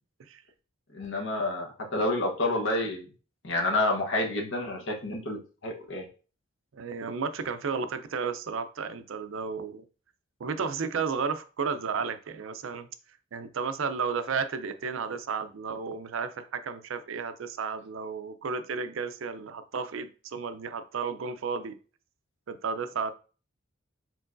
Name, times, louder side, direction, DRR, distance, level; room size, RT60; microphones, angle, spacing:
voice 1, 0.9-3.1 3.4-6.0, left 2 dB, 65° left, 1 dB, 1.0 m, -29 dB
voice 2, 6.7-9.8 10.4-12.9 13.3-21.8 22.5-23.1, right 5 dB, 75° right, 10 dB, 0.5 m, -33 dB
4.5 x 3.8 x 2.5 m, 0.36 s
head